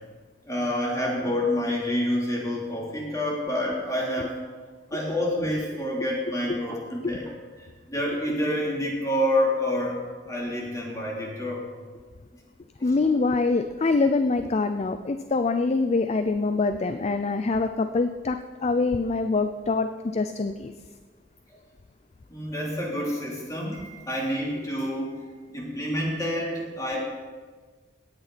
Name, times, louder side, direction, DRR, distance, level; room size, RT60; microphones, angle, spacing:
voice 1, 0.5-4.4 4.9-7.3 7.6-10.0 10.3-11.7 12.8-12.9 22.3-25.2 25.5-27.0, left 1 dB, 20° left, -4 dB, 3.4 m, -28 dB
voice 2, 12.8-20.7, left 3 dB, 35° left, 9 dB, 0.4 m, -25 dB
17.0 x 9.7 x 4.2 m, 1.5 s
head